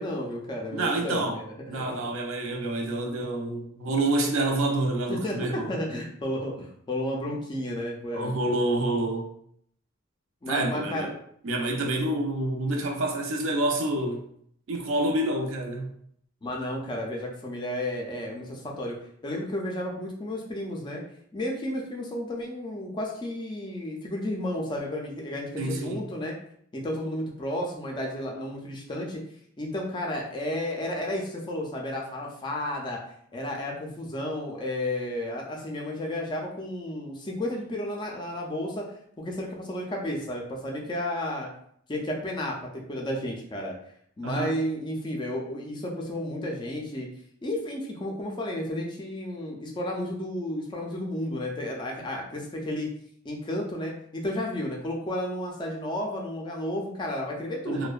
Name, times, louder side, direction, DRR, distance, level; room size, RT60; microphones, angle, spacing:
voice 1, 0.0-1.9 5.1-8.6 10.4-11.1 16.4-19.0 19.2-21.0 21.3-26.3 26.7-29.2 29.6-33.0 33.3-38.8 39.2-41.5 41.9-43.7 44.2-47.1 47.4-52.9 53.2-57.9, left 1 dB, 20° left, 0.3 m, -32 dB
voice 2, 0.7-1.4 1.7-5.7 8.1-9.3 10.5-11.1 11.4-14.2 14.7-15.9 25.6-26.0 44.2-44.5 57.7-57.9, right 2 dB, 70° right, 0.4 m, -28 dB
2.6 x 2.1 x 2.3 m
head